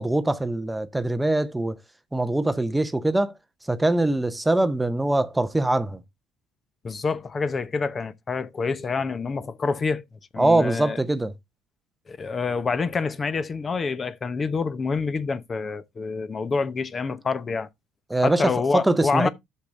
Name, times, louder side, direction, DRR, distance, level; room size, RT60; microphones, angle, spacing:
voice 1, 0.0-1.8 2.1-3.3 3.7-6.0 10.4-11.3 18.1-19.3, right 2 dB, 10° right, 0.7 m, -23 dB
voice 2, 6.8-10.0 10.3-11.0 12.1-17.7 18.2-19.3, left 4 dB, 30° left, 0.8 m, -27 dB
11.5 x 6.5 x 2.5 m
supercardioid pair, 90°, 0 cm